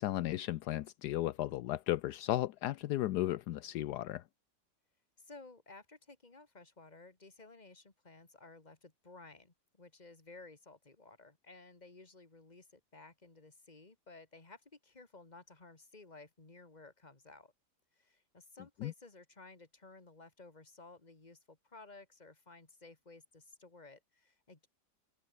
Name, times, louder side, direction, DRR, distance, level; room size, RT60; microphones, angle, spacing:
voice 1, 0.0-4.2 18.8-18.9, left 15 dB, 75° left, 1.1 m, -35 dB
voice 2, 5.2-17.5 17.9-24.7, left 3 dB, 25° left, 2.5 m, -56 dB
open air
omnidirectional pair, 1.8 m